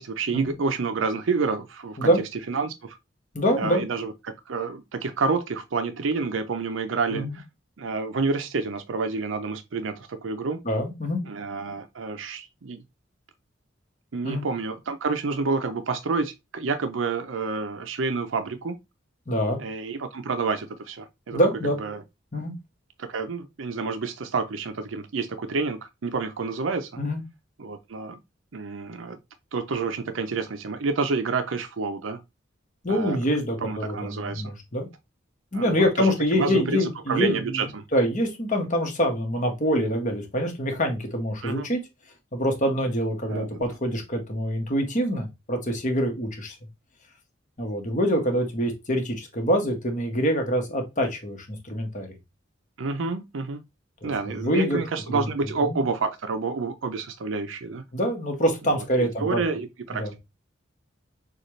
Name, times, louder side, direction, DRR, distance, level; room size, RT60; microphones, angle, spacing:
voice 1, 0.0-2.1 2.5-3.0 3.6-7.4 7.8-10.6 11.2-12.8 14.1-18.8 19.6-21.4 21.8-22.0 23.0-26.9 27.6-28.2 28.5-29.2 29.5-32.2 32.9-33.2 33.6-34.4 35.5-37.8 41.4-41.7 43.3-43.6 52.8-53.6 54.0-57.8 58.7-60.1, right 4 dB, 85° right, 0.6 m, -29 dB
voice 2, 3.3-3.8 7.1-7.4 10.6-11.2 14.2-14.4 19.3-19.6 21.3-21.8 22.3-22.5 27.0-27.2 32.8-34.9 35.5-37.6 37.9-41.8 42.3-46.6 47.6-52.2 54.0-54.8 55.1-55.8 57.9-59.4 60.0-60.2, equal, 40° left, 1.4 m, -25 dB
6.4 x 2.4 x 3.1 m
head